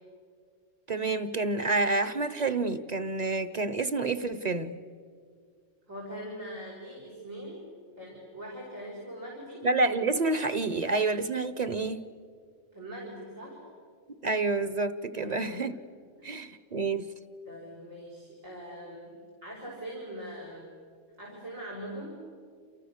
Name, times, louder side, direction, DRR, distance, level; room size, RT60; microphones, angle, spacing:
voice 1, 0.9-4.8 9.6-12.0 14.2-15.8 16.2-17.1, right 3 dB, 35° right, 13 dB, 1.0 m, -28 dB
voice 2, 5.9-7.7 8.0-9.7 12.7-13.6 15.2-15.8 16.2-16.4 17.5-20.7 21.2-22.2, equal, 90° right, -1 dB, 6.1 m, -42 dB
29.0 x 28.5 x 6.7 m, 2.1 s
omnidirectional pair, 1.3 m